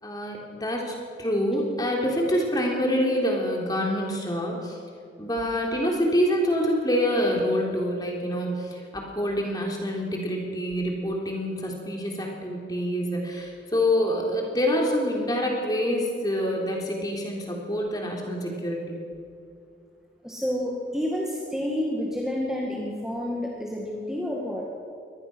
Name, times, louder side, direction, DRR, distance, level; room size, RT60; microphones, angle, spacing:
voice 1, 0.0-4.8 5.2-19.0, equal, 20° left, 0 dB, 3.7 m, -26 dB
voice 2, 20.2-24.7, left 1 dB, 5° right, -3 dB, 1.9 m, -29 dB
23.5 x 19.0 x 6.3 m, 2.4 s
head